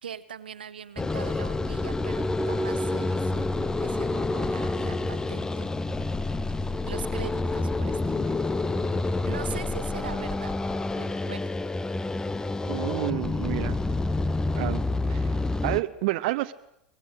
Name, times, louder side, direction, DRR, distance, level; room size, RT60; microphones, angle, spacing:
voice 1, 0.0-5.7 6.8-8.4 9.2-11.4, right 8 dB, 90° right, 13 dB, 1.3 m, -42 dB
sound 1, 1.0-15.8, left 2 dB, 10° left, 0.9 m, -28 dB
sound 2, 4.4-10.4, left 4 dB, 85° left, 6.5 m, -51 dB
voice 2, 12.7-13.8 14.5-16.5, right 19 dB, 65° right, 9 dB, 0.9 m, -30 dB
24.0 x 20.5 x 8.2 m, 0.82 s
hypercardioid pair, 95°, 5 cm